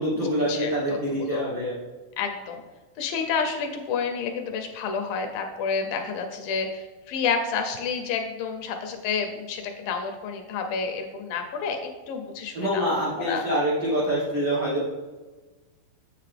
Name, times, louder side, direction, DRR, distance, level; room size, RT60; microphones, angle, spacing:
voice 1, 0.0-1.8 12.5-14.8, equal, 80° right, -7 dB, 1.0 m, -25 dB
voice 2, 2.2-2.6 3.0-12.9 13.2-13.5, left 5 dB, 80° left, 5 dB, 2.2 m, -29 dB
7.4 x 6.6 x 3.3 m, 1.2 s
omnidirectional pair, 4.4 m